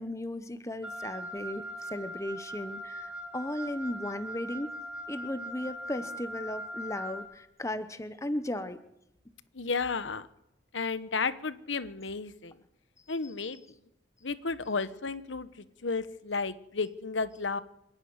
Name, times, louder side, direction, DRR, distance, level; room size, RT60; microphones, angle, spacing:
voice 1, 0.0-4.7 5.1-8.8, left 1 dB, 15° left, 11 dB, 1.0 m, -36 dB
Wind instrument woodwind instrument, 0.8-7.3, equal, 5° right, 1.6 m, -40 dB
voice 2, 9.5-10.3 10.7-12.6 13.1-13.6 14.2-17.6, left 4 dB, 85° left, 13 dB, 1.1 m, -33 dB
26.0 x 10.5 x 9.6 m, 0.83 s
head